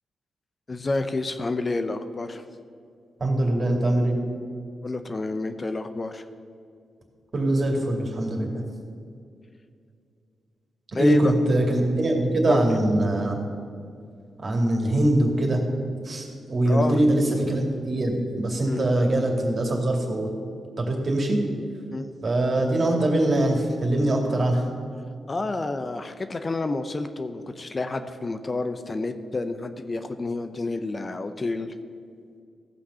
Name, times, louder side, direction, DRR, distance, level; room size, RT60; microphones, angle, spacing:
voice 1, 0.7-2.4 4.8-6.2 10.9-11.3 12.5-12.7 16.6-17.0 18.6-18.9 21.9-22.1 25.3-31.7, left 3 dB, 40° left, 9 dB, 0.7 m, -29 dB
voice 2, 3.2-4.2 7.3-8.6 10.9-13.4 14.4-15.6 16.1-20.3 20.8-21.4 22.2-24.6, right 1 dB, 50° right, 1 dB, 2.4 m, -22 dB
15.5 x 5.9 x 5.6 m, 2.3 s
supercardioid pair, 50°, 0 cm